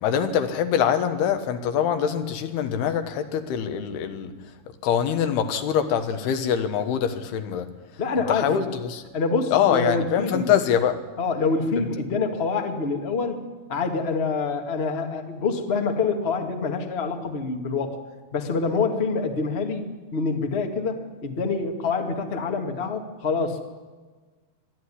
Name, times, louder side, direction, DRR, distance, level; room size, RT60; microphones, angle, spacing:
voice 1, 0.0-4.3 4.8-7.7 8.3-9.0 9.5-11.0 11.8-11.9, left 8 dB, 90° left, 8 dB, 3.3 m, -24 dB
voice 2, 8.0-8.6 9.1-10.5 11.2-13.4 13.7-18.0 18.3-23.6, left 4 dB, 60° left, 4 dB, 0.6 m, -26 dB
24.0 x 13.0 x 9.9 m, 1.4 s
omnidirectional pair, 4.5 m